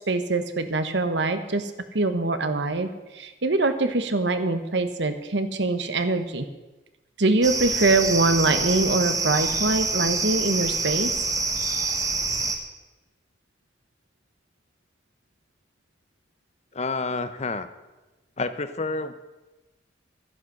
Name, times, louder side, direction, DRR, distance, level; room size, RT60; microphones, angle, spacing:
voice 1, 0.1-6.4 7.2-11.1, right 2 dB, 70° right, 9 dB, 1.2 m, -24 dB
sound 1, 7.4-12.6, right 3 dB, 20° right, 1.3 m, -26 dB
voice 2, 16.7-17.7 18.4-19.1, left 3 dB, 35° left, 11 dB, 0.8 m, -29 dB
12.5 x 11.0 x 6.4 m, 1.1 s
head